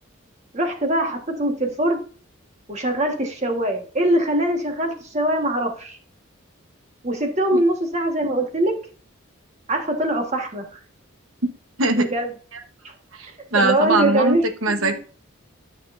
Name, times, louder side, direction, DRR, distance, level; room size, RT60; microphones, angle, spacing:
voice 1, 0.5-2.0 2.7-6.0 7.0-8.8 9.7-10.8 12.0-12.3 12.8-12.9 13.5-15.0, right 1 dB, 30° right, 1.5 m, -23 dB
voice 2, 13.1-15.0, right 2 dB, 70° right, 1.2 m, -22 dB
12.5 x 6.3 x 2.6 m
head